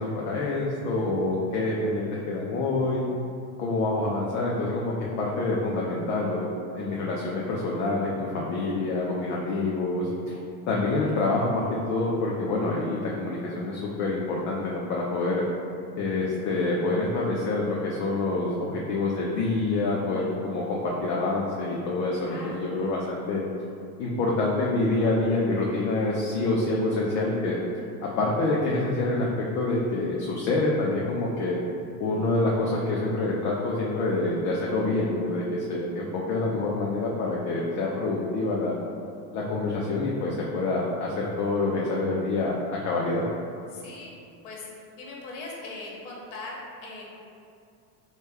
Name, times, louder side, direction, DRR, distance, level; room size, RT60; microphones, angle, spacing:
voice 1, 0.0-3.0 3.6-6.5 6.7-10.3 10.7-15.4 16.0-23.4 24.0-27.6 28.0-31.6 32.0-38.8 39.3-43.2, left 2 dB, 45° left, -4 dB, 0.4 m, -27 dB
voice 2, 22.1-22.9 43.7-44.1 44.4-44.6 45.0-47.1, left 2 dB, 65° left, -3 dB, 0.9 m, -40 dB
3.1 x 2.2 x 3.4 m, 2.5 s
supercardioid pair, 125°, 44 cm